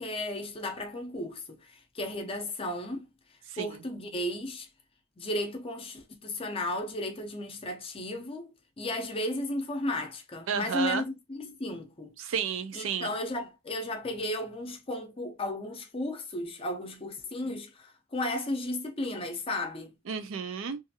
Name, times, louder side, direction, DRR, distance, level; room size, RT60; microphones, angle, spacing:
voice 1, 0.0-3.1 3.6-4.7 5.2-8.5 8.8-12.2 12.7-19.9, left 1 dB, 30° left, 0.6 m, -34 dB
voice 2, 3.5-3.8 10.5-11.0 12.2-13.1 20.1-20.8, right 6 dB, 75° right, 0.4 m, -32 dB
2.6 x 2.4 x 2.6 m
head